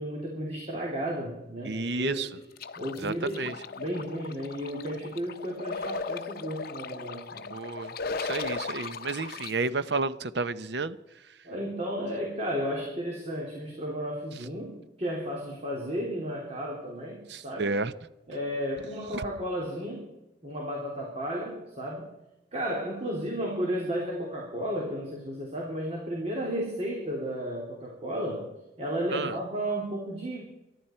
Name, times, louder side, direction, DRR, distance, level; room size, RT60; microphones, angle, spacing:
voice 1, 0.0-2.3 2.8-7.5 11.4-17.7 18.3-20.0 20.4-22.1 22.5-28.5 28.8-30.4, equal, 35° right, -2 dB, 3.1 m, -33 dB
voice 2, 1.6-2.3 3.0-3.5 7.5-7.9 8.2-11.0 17.3-17.9 19.1-19.2 29.1-29.4, right 3 dB, 65° right, 14 dB, 0.8 m, -31 dB
sound 1, 2.6-9.5, left 4 dB, 55° left, 0.7 m, -37 dB
23.5 x 12.0 x 4.4 m, 0.94 s
head